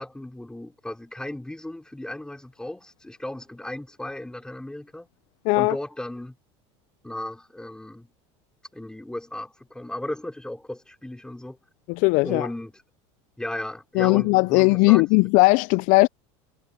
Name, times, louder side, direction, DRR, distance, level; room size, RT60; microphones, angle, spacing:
voice 1, 0.0-5.1 5.5-6.4 7.0-8.1 8.7-11.6 12.2-12.7 13.4-15.3, left 1 dB, 5° left, 3.7 m, -35 dB
voice 2, 5.4-5.8 11.9-12.5 13.9-16.1, left 25 dB, 60° left, 0.4 m, -18 dB
supercardioid pair, 120°, 15 cm